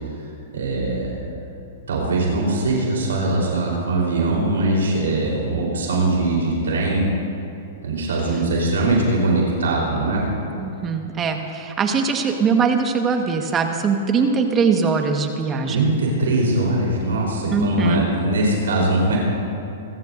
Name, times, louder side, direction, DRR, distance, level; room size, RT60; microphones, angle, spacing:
voice 1, 0.5-1.2 1.9-7.1 7.8-10.2 15.7-19.2, right 2 dB, 80° right, -3 dB, 3.9 m, -21 dB
voice 2, 10.6-15.8 17.5-18.0, right 5 dB, 25° right, 4 dB, 1.4 m, -21 dB
25.5 x 15.0 x 2.6 m, 2.7 s
hypercardioid pair, 120°, 0 cm